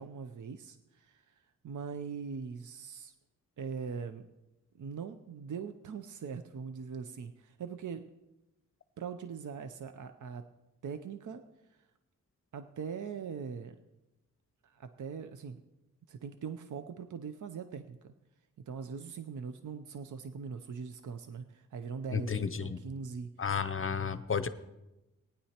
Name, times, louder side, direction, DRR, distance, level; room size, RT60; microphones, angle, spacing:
voice 1, 0.0-3.1 3.6-4.3 4.7-8.0 9.0-10.4 10.8-11.4 11.7-11.8 12.5-13.8 14.6-15.6 16.1-18.1 18.7-23.3, right 6 dB, 65° right, 9 dB, 0.6 m, -41 dB
voice 2, 22.1-22.8 23.4-24.5, left 6 dB, 40° left, 13 dB, 0.6 m, -32 dB
18.5 x 9.9 x 2.9 m, 0.96 s
wide cardioid pair, 95°, 33 cm